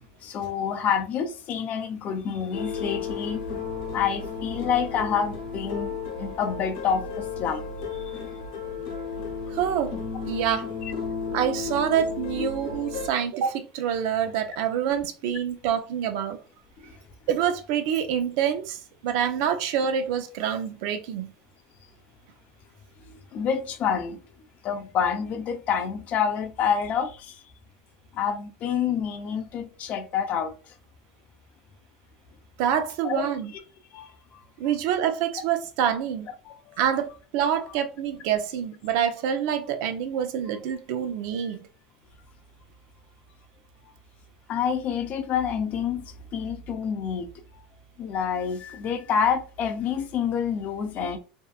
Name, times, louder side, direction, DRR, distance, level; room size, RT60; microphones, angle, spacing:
voice 1, 0.2-3.4 3.9-8.4 10.8-10.9 12.4-12.5 16.8-16.9 23.1-24.2 24.6-27.4 28.1-30.5 33.0-33.3 33.9-34.4 36.4-36.8 44.5-47.3 48.0-51.2, left 7 dB, 45° left, 0.5 m, -28 dB
sound 1, 2.5-13.1, left 5 dB, 70° left, 1.0 m, -33 dB
voice 2, 9.5-9.9 10.3-10.7 11.3-16.4 17.3-18.8 19.0-21.3 32.6-33.5 34.6-36.3 36.8-41.7, right 9 dB, 65° right, 0.5 m, -26 dB
2.7 x 2.2 x 2.3 m
hypercardioid pair, 100°, 4 cm